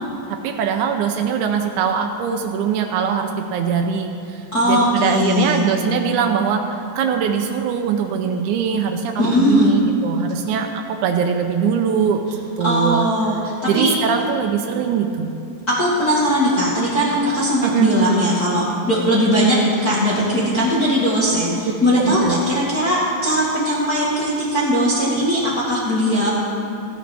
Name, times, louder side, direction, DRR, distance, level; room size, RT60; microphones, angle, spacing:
voice 1, 0.3-6.6 7.0-13.1 13.7-15.3 17.6-18.0 21.9-22.4, right 7 dB, 85° right, 4 dB, 1.7 m, -22 dB
voice 2, 4.5-5.6 9.2-9.7 12.6-13.9 15.8-26.3, equal, 65° left, -7 dB, 0.9 m, -19 dB
14.5 x 10.0 x 3.4 m, 2.9 s
omnidirectional pair, 4.1 m